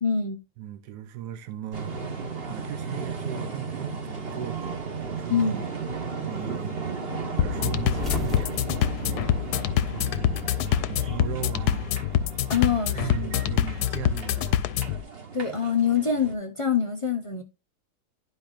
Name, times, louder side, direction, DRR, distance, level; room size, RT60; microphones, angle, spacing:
voice 1, 0.0-0.4 5.3-5.6 12.5-13.1 15.3-17.4, left 7 dB, 35° left, 0.5 m, -25 dB
voice 2, 0.6-4.8 5.0-5.6 6.2-6.8 7.4-9.3 9.9-12.0 12.7-14.7, right 11 dB, 80° right, 1.3 m, -38 dB
sound 1, 1.7-16.3, right 5 dB, 40° right, 1.4 m, -35 dB
sound 2, 7.4-15.0, left 11 dB, 80° left, 1.1 m, -26 dB
sound 3, 8.0-10.2 10.5-11.6 12.7-14.2, left 4 dB, ahead, 1.2 m, -38 dB
11.5 x 4.4 x 2.5 m
omnidirectional pair, 1.7 m